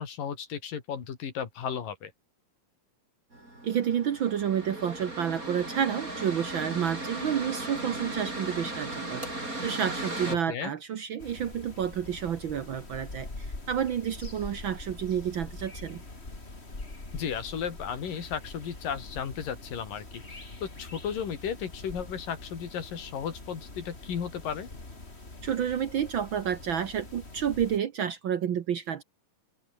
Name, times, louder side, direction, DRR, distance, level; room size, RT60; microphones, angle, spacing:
voice 1, 0.0-2.1 10.3-10.7 17.1-24.7, left 8 dB, 85° left, 4.7 m, -35 dB
Mechanical fan, 3.3-10.4, right 2 dB, 25° right, 8.0 m, -37 dB
voice 2, 3.6-16.0 25.4-29.0, right 9 dB, 70° right, 1.1 m, -30 dB
sound 1, 11.2-27.8, left 2 dB, 20° left, 3.6 m, -44 dB
open air
omnidirectional pair, 3.8 m